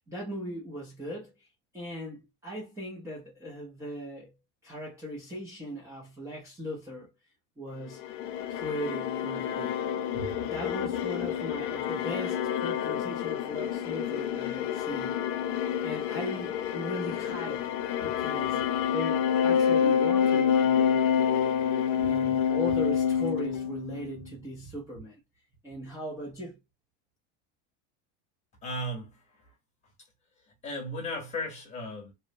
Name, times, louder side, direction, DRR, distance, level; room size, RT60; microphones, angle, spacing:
voice 1, 0.0-1.5 1.7-4.3 4.6-7.1 7.6-8.0 8.5-9.8 10.1-15.2 15.5-17.7 18.0-21.1 22.0-25.2 25.6-26.6, equal, 10° right, 0.5 m, -38 dB
sound 1, 7.9-24.2, left 8 dB, 85° left, 0.6 m, -28 dB
voice 2, 28.6-29.5 30.6-32.1, left 1 dB, 20° left, 0.9 m, -36 dB
3.0 x 2.0 x 2.6 m
cardioid pair, 165°, 36 cm